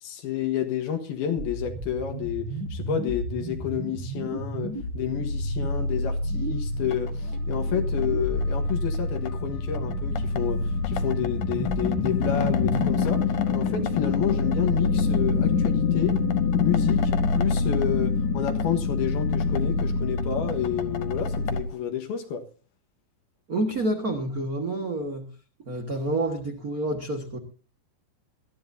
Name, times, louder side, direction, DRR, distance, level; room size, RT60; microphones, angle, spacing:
voice 1, 0.0-2.4 2.7-16.2 16.6-22.5, left 9 dB, 85° left, 3.4 m, -30 dB
sound 1, 1.3-12.9, right 2 dB, 40° right, 2.0 m, -35 dB
sound 2, 4.3-21.6, left 4 dB, 65° left, 2.2 m, -26 dB
voice 2, 23.5-25.3 25.6-27.4, right 2 dB, 60° right, 0.9 m, -28 dB
21.5 x 13.0 x 2.7 m
omnidirectional pair, 4.3 m